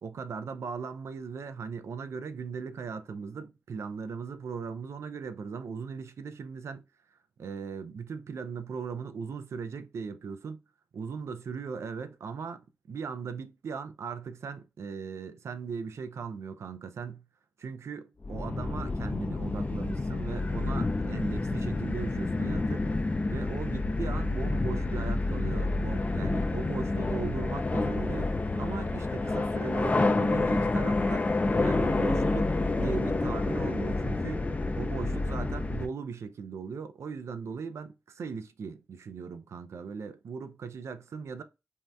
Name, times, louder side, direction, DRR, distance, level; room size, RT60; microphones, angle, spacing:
voice 1, 0.0-6.8 7.4-10.6 10.9-17.3 17.6-23.0 23.3-28.3 28.6-31.3 31.6-32.5 32.8-34.5 34.8-41.4, right 5 dB, 80° right, 0.3 m, -38 dB
sound 1, 18.2-35.9, left 2 dB, 30° left, 0.3 m, -29 dB
2.6 x 2.1 x 3.2 m
cardioid pair, 55°, 5 cm